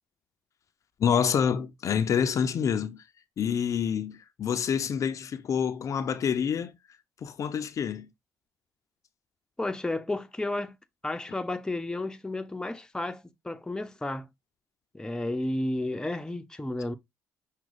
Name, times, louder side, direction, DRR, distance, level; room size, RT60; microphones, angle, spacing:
voice 1, 1.0-3.0 3.4-6.7 7.2-8.1, left 7 dB, 55° left, 0.5 m, -27 dB
voice 2, 9.6-10.8 11.0-14.3 14.9-17.0, left 2 dB, 10° left, 0.7 m, -32 dB
6.0 x 2.3 x 3.9 m
supercardioid pair, 65°, 7 cm